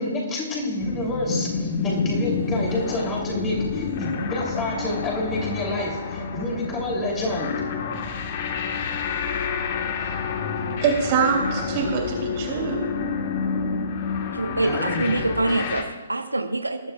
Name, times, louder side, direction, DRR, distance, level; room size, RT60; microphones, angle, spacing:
voice 1, 0.0-7.6 14.4-15.1, left 1 dB, 15° left, -1 dB, 3.2 m, -28 dB
sound 1, 0.8-15.8, left 5 dB, 40° left, 1.4 m, -28 dB
voice 2, 10.8-12.8, right 6 dB, 30° right, 0 dB, 3.4 m, -24 dB
voice 3, 14.4-16.8, right 2 dB, 80° right, 8 dB, 0.8 m, -25 dB
20.5 x 12.0 x 2.4 m, 1.4 s
figure-of-eight pair, 130°, 0 cm